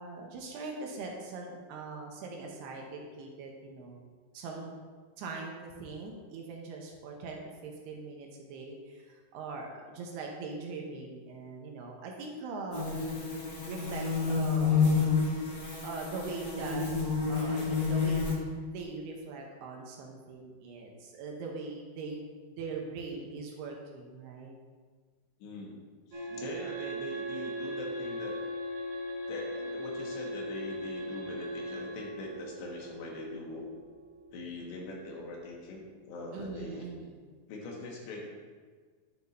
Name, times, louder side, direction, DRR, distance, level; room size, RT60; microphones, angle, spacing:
voice 1, 0.0-4.0 4.3-4.7 5.2-13.0 13.7-14.9 15.8-16.8 17.3-24.6 26.3-26.4 36.3-37.2, right 4 dB, 75° right, 0 dB, 2.8 m, -41 dB
sound 1, 12.7-18.3, left 5 dB, 40° left, 2.0 m, -29 dB
voice 2, 25.4-25.8 26.1-28.4 29.3-33.7 34.3-36.9 37.5-38.3, left 2 dB, 75° left, -1 dB, 3.4 m, -42 dB
sound 2, 26.1-35.8, equal, 40° right, 3.4 m, -39 dB
10.5 x 8.5 x 2.7 m, 1.5 s
omnidirectional pair, 5.1 m